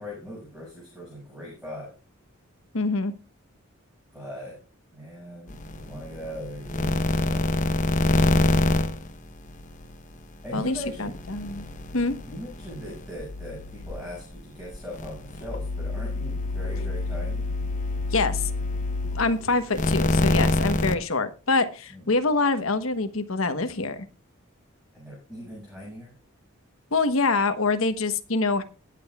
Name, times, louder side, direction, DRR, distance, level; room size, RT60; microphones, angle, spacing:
voice 1, 0.0-2.0 4.1-4.6 4.9-7.8 10.4-11.2 12.2-17.5 21.9-22.1 24.9-26.1, equal, 5° right, -5 dB, 6.7 m, -40 dB
voice 2, 2.7-3.1 10.5-11.6 11.9-12.1 18.1-18.5 19.1-24.0 26.9-28.6, left 3 dB, 75° left, 10 dB, 1.2 m, -25 dB
sound 1, 5.5-9.9 10.2-20.9, left 2 dB, 35° left, 0.9 m, -27 dB
21.0 x 7.8 x 2.4 m, 0.33 s
head